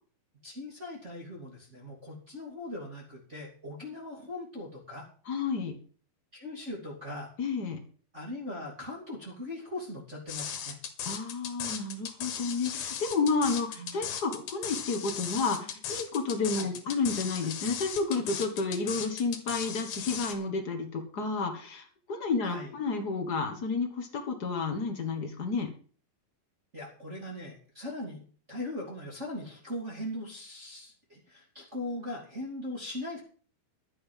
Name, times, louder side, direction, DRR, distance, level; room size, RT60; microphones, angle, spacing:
voice 1, 0.4-5.1 6.3-7.3 8.1-10.8 13.7-14.0 16.6-16.7 22.4-22.7 26.7-28.2 28.5-33.2, left 1 dB, 20° right, -4 dB, 2.5 m, -40 dB
voice 2, 5.2-5.8 7.4-7.8 11.0-25.7, left 4 dB, 90° left, 3 dB, 0.8 m, -31 dB
sound 1, 10.3-20.3, left 8 dB, 60° left, 2.7 m, -37 dB
12.0 x 9.4 x 5.5 m, 0.42 s
omnidirectional pair, 4.3 m